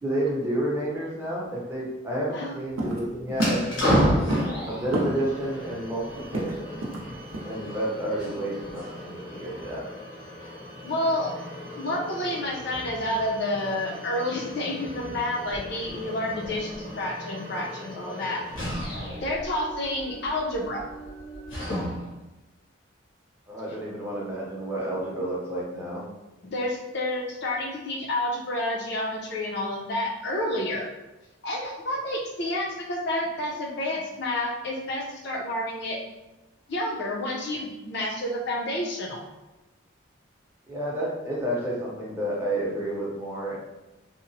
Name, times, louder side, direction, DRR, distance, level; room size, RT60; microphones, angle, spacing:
voice 1, 0.0-4.1 4.7-6.0 6.3-6.9 7.4-9.8 23.5-26.0 40.7-43.6, right 1 dB, 10° right, -5 dB, 0.6 m, -30 dB
sound 1, 2.8-5.4 5.7-5.8 6.0-7.1 7.3-7.5 7.9-8.1, right 1 dB, 80° right, 0.5 m, -29 dB
sound 2, 3.3-22.2, equal, 70° left, 0.9 m, -33 dB
voice 2, 10.8-11.3 11.7-18.4 19.2-20.8 26.4-30.9 31.4-36.0 36.7-39.2, left 1 dB, 55° left, -2 dB, 0.5 m, -29 dB
2.8 x 2.0 x 2.6 m, 1.0 s
head